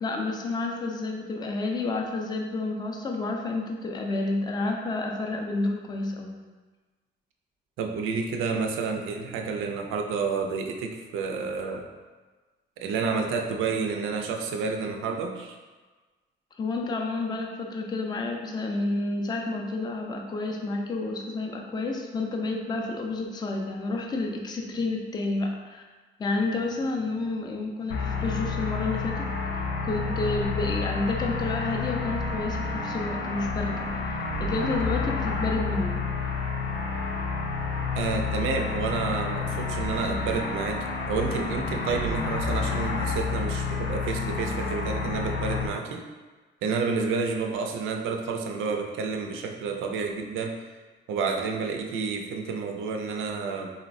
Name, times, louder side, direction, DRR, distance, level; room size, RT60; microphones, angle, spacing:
voice 1, 0.0-6.4 16.6-25.8 26.2-29.3 29.5-36.1, left 2 dB, 20° left, 2 dB, 0.4 m, -30 dB
voice 2, 7.8-11.9 12.8-15.6 38.0-46.0 46.6-50.6 51.1-53.7, right 4 dB, 85° right, 3 dB, 0.4 m, -30 dB
sound 1, 27.9-45.7, left 4 dB, 80° left, 0.5 m, -30 dB
3.8 x 2.1 x 2.5 m, 1.3 s
cardioid pair, 90°, 20 cm